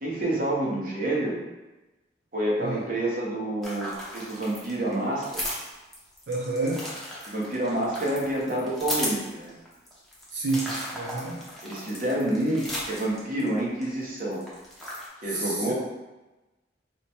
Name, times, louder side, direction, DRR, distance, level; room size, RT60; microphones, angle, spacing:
voice 1, 0.0-1.4 2.3-5.5 7.3-9.6 11.6-14.4 15.2-15.7, right 1 dB, 50° right, -4 dB, 0.8 m, -28 dB
sound 1, 3.6-13.8 14.2-15.1, equal, ahead, 0.7 m, -36 dB
voice 2, 6.3-6.9 10.3-11.4 15.3-15.7, right 2 dB, 85° right, -2 dB, 0.5 m, -29 dB
3.0 x 2.1 x 4.1 m, 1.1 s
head